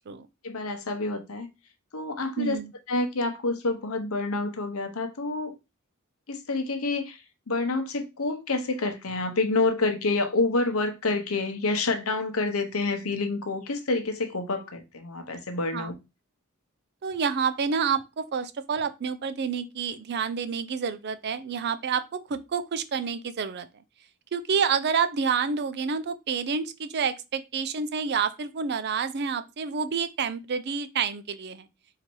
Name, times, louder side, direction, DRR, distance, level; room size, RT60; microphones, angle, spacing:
voice 1, 0.4-1.5 1.9-2.6 2.9-5.5 6.3-7.2 7.5-15.9, left 3 dB, 70° left, 0.9 m, -28 dB
voice 2, 2.4-2.7 15.7-15.9 17.0-23.7 24.3-31.7, right 6 dB, 50° right, 0.5 m, -28 dB
4.0 x 2.8 x 4.6 m
head